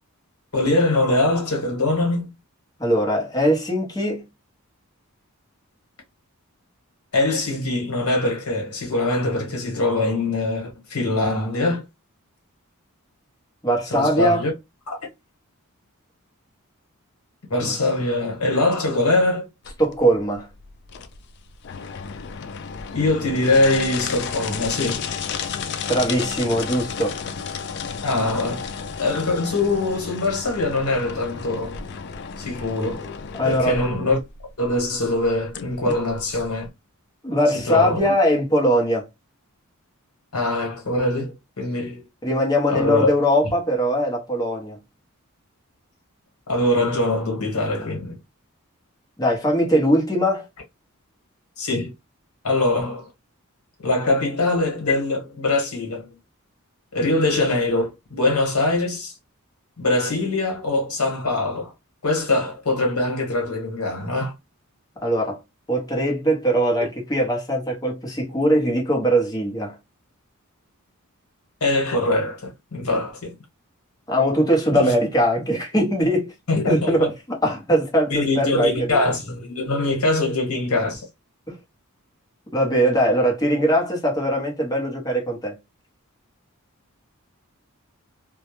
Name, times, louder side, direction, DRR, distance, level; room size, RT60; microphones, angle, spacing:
voice 1, 0.5-2.3 7.1-11.8 13.9-14.5 14.9-15.0 17.5-19.4 22.9-25.1 28.0-28.7 29.0-31.8 32.4-33.1 33.4-34.2 34.6-36.7 37.5-38.1 40.3-42.0 42.7-43.1 46.5-48.2 51.6-51.9 52.4-53.1 53.8-56.1 56.9-59.1 59.8-61.7 62.0-64.3 71.6-73.3 74.7-74.9 76.5-77.1 78.1-81.0, left 2 dB, 75° left, 1.1 m, -23 dB
voice 2, 2.8-4.2 13.6-14.5 17.6-17.8 19.8-20.5 25.9-27.2 33.3-33.8 35.8-35.9 37.2-39.1 42.2-44.8 49.2-50.5 65.0-65.4 65.7-69.8 74.1-76.3 76.7-77.1 77.4-79.0 81.5-81.6 82.5-85.6, equal, 15° left, 0.7 m, -21 dB
sound 1, 19.7-36.7, left 6 dB, 50° left, 0.3 m, -33 dB
2.2 x 2.1 x 2.9 m
head